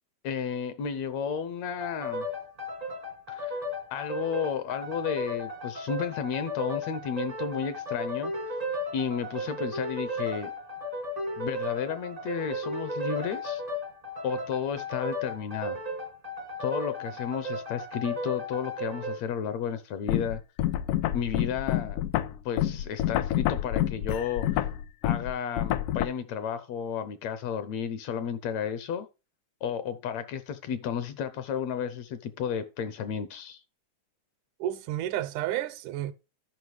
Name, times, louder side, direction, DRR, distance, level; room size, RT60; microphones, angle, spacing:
voice 1, 0.2-2.3 3.3-3.6 3.9-8.6 8.9-10.5 11.4-13.6 14.2-15.8 16.6-20.4 21.1-22.0 22.5-24.7 25.0-29.1 29.6-33.6, left 7 dB, 70° left, 1.8 m, -32 dB
sound 1, 1.8-19.2, left 1 dB, 35° right, 0.6 m, -35 dB
sound 2, 20.1-26.1, left 13 dB, 90° left, 2.1 m, -28 dB
voice 2, 34.6-36.1, right 13 dB, 85° right, 2.1 m, -31 dB
12.0 x 5.5 x 4.8 m
omnidirectional pair, 3.5 m